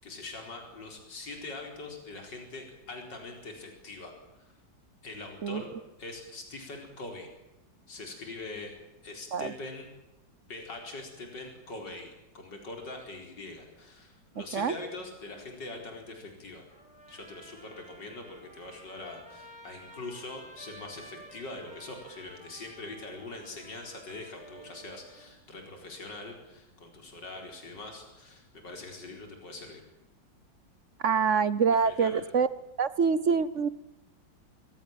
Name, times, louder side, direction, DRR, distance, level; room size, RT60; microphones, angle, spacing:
voice 1, 0.0-4.5 5.0-5.7 6.0-7.3 7.9-8.8 9.0-9.9 10.5-16.6 17.1-29.8 31.7-32.2, left 2 dB, 65° left, 3 dB, 5.1 m, -43 dB
Trumpet, 16.7-25.3, right 1 dB, 5° right, 6.2 m, -52 dB
voice 2, 31.0-32.5 32.8-33.7, right 6 dB, 50° right, 17 dB, 1.1 m, -25 dB
25.0 x 17.0 x 9.2 m, 0.94 s
omnidirectional pair, 2.1 m